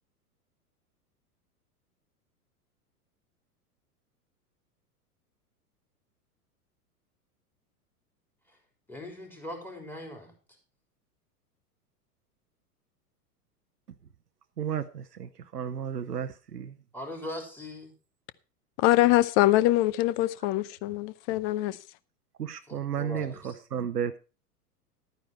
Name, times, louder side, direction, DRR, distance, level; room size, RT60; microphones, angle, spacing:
voice 1, 8.9-10.3 16.9-17.9 22.7-23.5, left 1 dB, 5° left, 3.8 m, -40 dB
voice 2, 14.6-16.7 22.4-24.2, right 8 dB, 90° right, 0.8 m, -33 dB
voice 3, 18.8-21.8, left 16 dB, 40° left, 0.8 m, -23 dB
12.0 x 9.4 x 4.3 m
hypercardioid pair, 95°, 47 cm